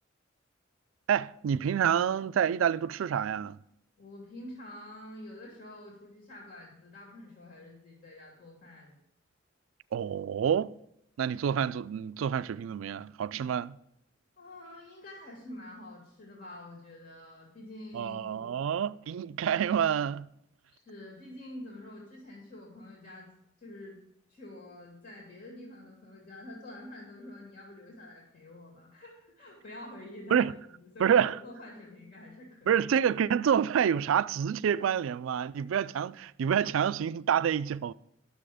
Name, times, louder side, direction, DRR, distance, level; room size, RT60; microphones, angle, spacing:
voice 1, 1.1-3.6 9.9-10.8 11.2-13.8 17.9-20.3 30.3-30.5 31.0-31.4 32.7-37.9, right 8 dB, 85° right, 0.3 m, -28 dB
voice 2, 4.0-8.9 14.4-18.6 20.7-23.3 23.6-24.0 24.3-32.8, left 1 dB, 55° left, 2.3 m, -47 dB
10.0 x 6.9 x 4.9 m
head